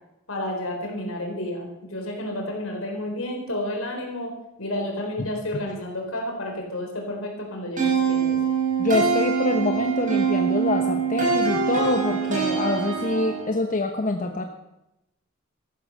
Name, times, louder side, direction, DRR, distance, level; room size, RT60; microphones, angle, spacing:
voice 1, 0.3-4.3 4.6-8.4, left 1 dB, 70° left, 1 dB, 4.2 m, -31 dB
sound 1, 7.8-13.6, right 5 dB, 40° right, 4.7 m, -24 dB
voice 2, 8.8-14.4, left 2 dB, 40° left, 4 dB, 1.0 m, -25 dB
14.0 x 11.5 x 6.6 m, 0.90 s
head